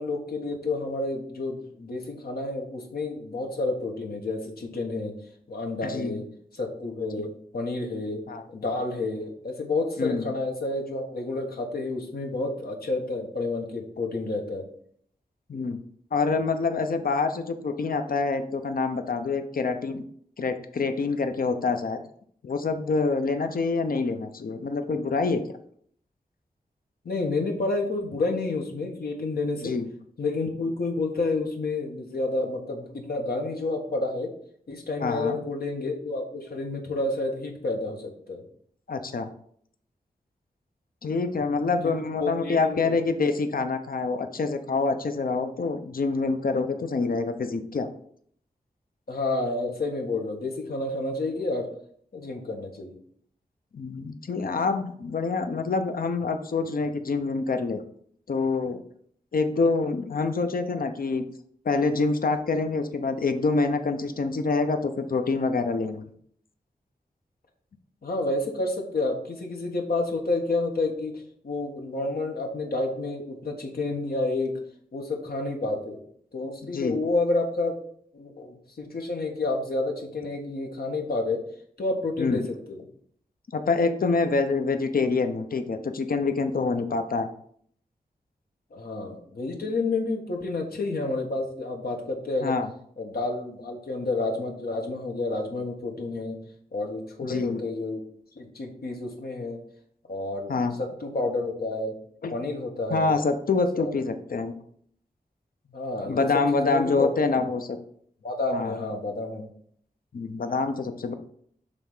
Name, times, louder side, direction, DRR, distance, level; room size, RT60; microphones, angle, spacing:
voice 1, 0.0-5.1 5.5-6.2 6.5-8.2 8.5-14.7 27.0-29.7 30.2-34.3 34.7-38.4 41.8-41.9 42.2-42.9 49.1-51.7 52.1-53.0 68.0-74.5 74.9-76.0 76.3-77.7 78.1-81.4 81.8-82.9 88.7-92.6 93.0-96.4 96.7-98.0 98.4-99.6 100.1-100.5 100.8-101.9 102.3-103.1 103.7-103.9 105.7-107.1 108.2-109.5, left 2 dB, 85° left, 1 dB, 1.4 m, -30 dB
voice 2, 5.8-6.2 7.2-7.3 8.3-8.4 10.0-10.3 15.5-15.8 16.1-20.0 20.4-22.0 22.4-25.4 29.6-29.9 35.0-35.4 38.9-39.3 41.0-47.9 53.7-57.8 58.3-58.8 59.3-61.2 61.6-66.0 76.7-77.0 82.2-82.4 83.5-87.3 92.4-92.7 97.2-97.6 100.5-100.7 102.2-102.3 102.9-104.5 106.0-107.8 108.5-108.7 110.1-111.1, left 4 dB, 70° left, 7 dB, 0.7 m, -26 dB
7.0 x 3.4 x 5.5 m, 0.62 s
wide cardioid pair, 90°, 15 cm